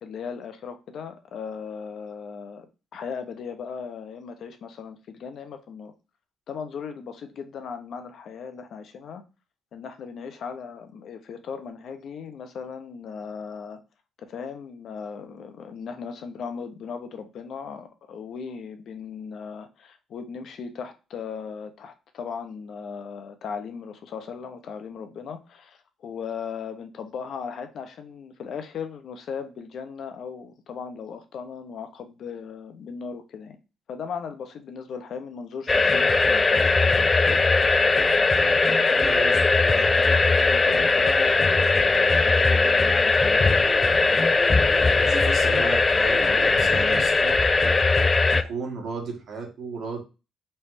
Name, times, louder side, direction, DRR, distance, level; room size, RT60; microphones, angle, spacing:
voice 1, 0.0-2.7 2.9-5.9 6.5-9.2 9.7-13.8 14.2-33.6 33.9-37.3 40.5-43.6, left 6 dB, 65° left, 0.8 m, -37 dB
sound 1, 35.7-48.4, left 3 dB, 30° left, 0.4 m, -20 dB
voice 2, 38.9-40.0 45.0-47.4 48.3-50.0, right 4 dB, 65° right, 1.8 m, -35 dB
4.3 x 3.4 x 3.1 m
cardioid pair, 90°, 0 cm